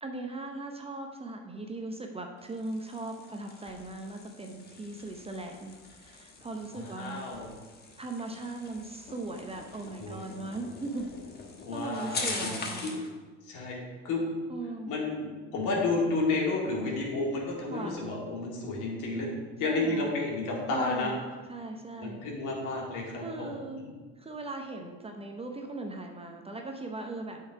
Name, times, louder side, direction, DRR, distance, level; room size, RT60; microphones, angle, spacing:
voice 1, 0.0-7.2 8.0-11.1 11.7-13.0 14.5-15.0 17.7-18.0 19.6-20.1 20.7-21.2 21.5-22.2 23.2-23.8 24.2-27.4, right 2 dB, 15° right, 3 dB, 0.7 m, -39 dB
sound 1, 2.4-13.1, left 3 dB, 30° left, 1.3 m, -42 dB
voice 2, 6.7-7.5 10.0-10.2 11.6-12.5 12.8-12.9 13.4-13.8 14.0-14.2 14.9-19.3 19.6-21.1 22.0-23.5 23.7-23.9, left 3 dB, 60° left, -2 dB, 2.3 m, -31 dB
8.4 x 4.7 x 4.7 m, 1.4 s
hypercardioid pair, 85°, 35 cm